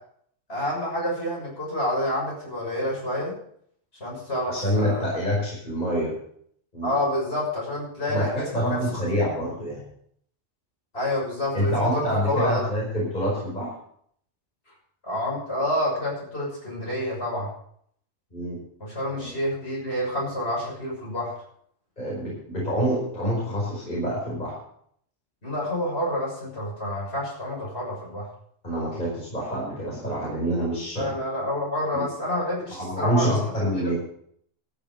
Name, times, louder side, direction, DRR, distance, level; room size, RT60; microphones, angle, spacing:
voice 1, 0.5-3.3 4.0-5.2 6.8-9.0 9.4-9.5 10.9-12.6 15.0-17.5 18.8-21.3 25.4-28.3 31.0-33.4 33.7-33.9, left 1 dB, 55° left, -5 dB, 7.0 m, -28 dB
voice 2, 4.5-6.1 6.7-6.9 8.1-9.8 11.5-13.7 18.3-18.6 19.1-19.4 22.0-24.5 28.6-31.1 31.9-32.0 32.7-34.0, equal, 35° left, -5 dB, 5.2 m, -26 dB
13.5 x 7.3 x 7.4 m, 0.65 s
omnidirectional pair, 1.3 m